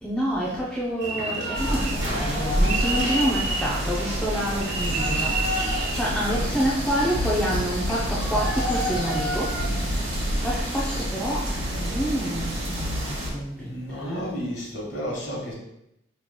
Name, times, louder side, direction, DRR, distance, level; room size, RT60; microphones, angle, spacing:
voice 1, 0.0-9.6 10.4-14.4, equal, 5° left, -7 dB, 0.5 m, -28 dB
sound 1, 1.0-6.4, right 2 dB, 70° right, 1.2 m, -29 dB
sound 2, 1.5-13.3, equal, 90° right, 1.5 m, -28 dB
sound 3, 4.8-11.1, equal, 40° left, 1.1 m, -34 dB
voice 2, 13.6-15.5, equal, 60° left, -4 dB, 1.4 m, -32 dB
5.5 x 3.0 x 2.2 m, 0.83 s
head